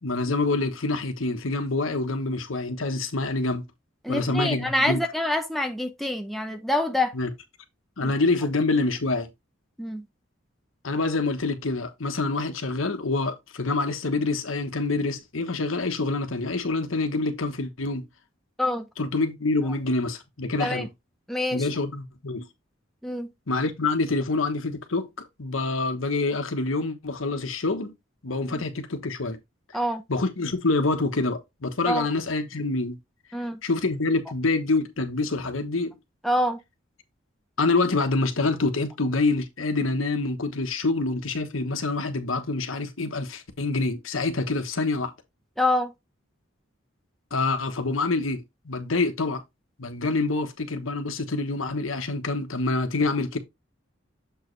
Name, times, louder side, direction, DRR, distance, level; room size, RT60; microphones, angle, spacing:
voice 1, 0.0-3.6 4.1-5.0 7.1-7.3 8.0-9.3 10.8-18.1 19.0-20.9 21.5-22.5 23.5-27.9 28.2-29.4 30.1-33.0 33.6-35.9 37.6-45.1 47.3-49.4 49.8-53.4, left 3 dB, 80° left, 1.2 m, -26 dB
voice 2, 4.0-7.1 8.0-8.1 9.8-10.0 18.6-18.9 20.6-20.9 21.3-21.7 23.0-23.3 28.5-28.6 29.7-30.0 31.9-32.1 33.3-33.6 36.2-36.6 45.6-45.9, left 1 dB, ahead, 0.8 m, -26 dB
7.3 x 4.7 x 3.2 m
head